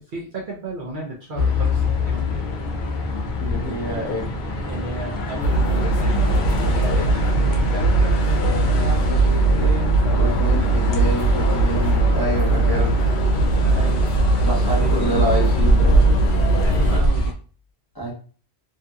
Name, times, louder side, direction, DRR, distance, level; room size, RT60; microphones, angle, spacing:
voice 1, 0.1-2.4 4.6-10.0 12.7-13.2 13.6-14.0 14.7-15.3 16.5-17.3, right 1 dB, 55° right, -3 dB, 0.7 m, -33 dB
sound 1, 1.3-17.3, left 1 dB, 55° left, 0.6 m, -25 dB
voice 2, 3.4-4.3 9.1-9.7 10.1-13.0 14.4-16.5 17.9-18.1, right 1 dB, 20° left, -5 dB, 0.9 m, -28 dB
sound 2, 5.4-17.0, right 2 dB, 80° left, 0.9 m, -19 dB
2.7 x 2.6 x 2.3 m, 0.39 s
omnidirectional pair, 1.1 m